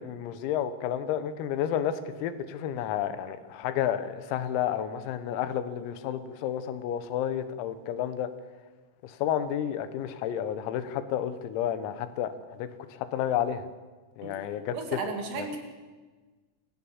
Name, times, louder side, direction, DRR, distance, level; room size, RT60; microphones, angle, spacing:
voice 1, 0.0-8.3 9.0-13.7 14.2-15.0 15.4-15.5, left 10 dB, 90° left, 12 dB, 4.0 m, -31 dB
voice 2, 14.7-15.6, right 4 dB, 55° right, 4 dB, 4.3 m, -34 dB
27.0 x 16.0 x 7.3 m, 1.3 s
omnidirectional pair, 6.0 m